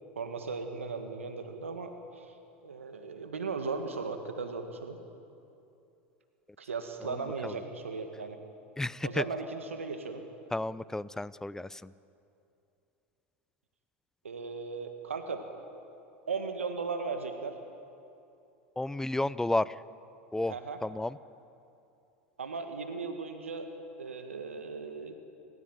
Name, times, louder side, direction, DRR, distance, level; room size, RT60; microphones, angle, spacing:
voice 1, 0.2-2.3 2.6-5.0 6.6-8.4 9.0-10.2 14.2-15.4 16.3-17.6 20.5-20.8 22.4-23.7 24.0-25.1, right 4 dB, 90° right, 6 dB, 1.7 m, -37 dB
voice 2, 7.0-7.5 8.8-9.2 10.5-11.9 18.8-19.8 20.3-20.5 20.8-21.2, left 2 dB, 10° left, 18 dB, 0.6 m, -32 dB
28.5 x 15.5 x 9.1 m, 2.7 s
hypercardioid pair, 85°, 7 cm